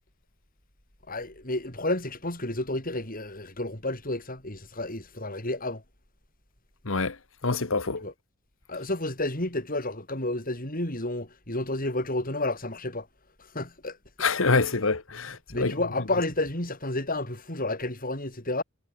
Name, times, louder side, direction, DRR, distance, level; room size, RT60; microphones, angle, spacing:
voice 1, 1.1-5.8 8.0-8.1 8.7-13.1 13.5-14.0 15.5-18.6, left 2 dB, 45° left, 7.8 m, -31 dB
voice 2, 6.8-7.2 7.4-8.1 14.2-15.7, left 4 dB, 70° left, 1.4 m, -26 dB
head